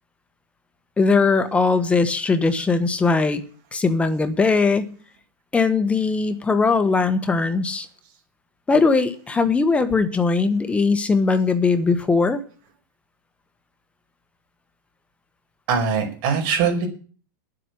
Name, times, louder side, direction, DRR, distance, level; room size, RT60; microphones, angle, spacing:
voice 1, 1.0-3.4 3.7-4.9 5.5-7.9 8.7-12.4, left 4 dB, 10° left, 10 dB, 1.3 m, -20 dB
voice 2, 15.7-16.9, right 6 dB, 45° right, 3 dB, 5.1 m, -21 dB
9.9 x 7.9 x 9.7 m, 0.40 s
supercardioid pair, 145°, 11 cm